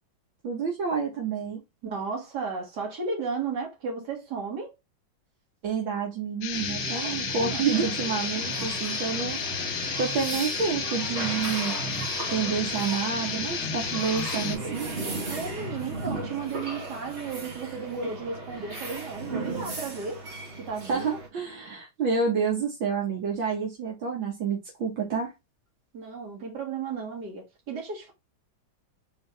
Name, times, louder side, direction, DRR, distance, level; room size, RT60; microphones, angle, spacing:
voice 1, 0.4-1.6 5.6-9.4 10.0-11.8 12.3-14.9 20.8-25.3, right 5 dB, 75° right, 1.9 m, -29 dB
voice 2, 1.8-4.8 6.9-7.6 15.3-20.2 20.6-21.2 25.9-28.1, right 5 dB, 55° right, 2.2 m, -34 dB
sound 1, 6.4-14.6, left 11 dB, 75° left, 1.0 m, -34 dB
Guitar, 6.5-14.5, right 1 dB, 5° left, 0.4 m, -34 dB
sound 2, 7.7-21.3, right 3 dB, 40° right, 1.3 m, -37 dB
3.9 x 3.6 x 3.3 m
omnidirectional pair, 2.2 m